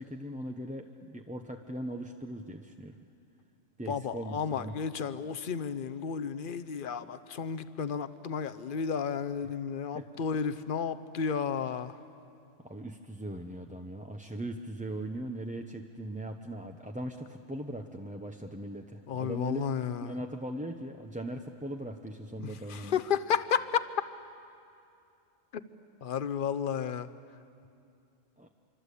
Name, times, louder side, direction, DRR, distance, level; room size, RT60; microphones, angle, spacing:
voice 1, 0.0-3.0 3.8-4.8 9.9-10.1 12.6-19.6 20.0-23.0 28.4-28.5, right 1 dB, 10° right, 3 dB, 0.6 m, -39 dB
voice 2, 3.9-12.0 19.1-20.2 22.4-23.9 26.0-27.1, left 7 dB, 45° left, 12 dB, 0.9 m, -32 dB
26.0 x 25.0 x 8.4 m, 2.5 s
omnidirectional pair, 1.3 m